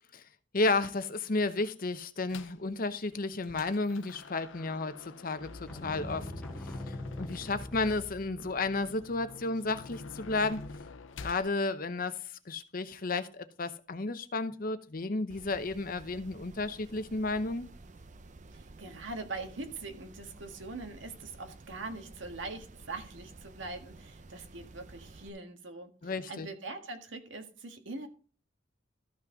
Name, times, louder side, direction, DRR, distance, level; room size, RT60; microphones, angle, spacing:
voice 1, 0.5-6.3 6.6-10.6 11.2-12.2 12.5-17.7 26.0-26.5, left 3 dB, 45° left, 0.8 m, -32 dB
sound 1, 2.3-2.6 3.1-11.5, left 3 dB, 85° left, 0.6 m, -47 dB
sound 2, 5.7-8.8, left 1 dB, 5° left, 0.5 m, -43 dB
sound 3, 15.3-25.3, right 2 dB, 40° right, 0.6 m, -52 dB
voice 2, 18.5-28.1, right 3 dB, 75° right, 1.7 m, -42 dB
13.5 x 5.9 x 3.9 m
head